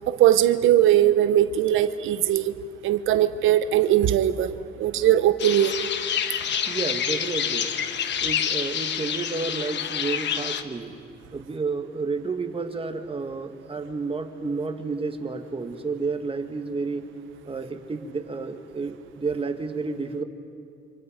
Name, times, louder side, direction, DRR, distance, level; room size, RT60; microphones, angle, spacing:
voice 1, 0.1-2.5 2.8-5.8, right 12 dB, 80° right, 11 dB, 0.9 m, -20 dB
sound 1, 5.4-10.6, left 8 dB, 65° left, 1.2 m, -28 dB
voice 2, 6.6-7.7 8.2-10.9 11.3-17.1 17.5-20.2, right 4 dB, 30° right, 6 dB, 1.9 m, -30 dB
28.5 x 26.5 x 5.2 m, 2.4 s
cardioid pair, 90°, 20 cm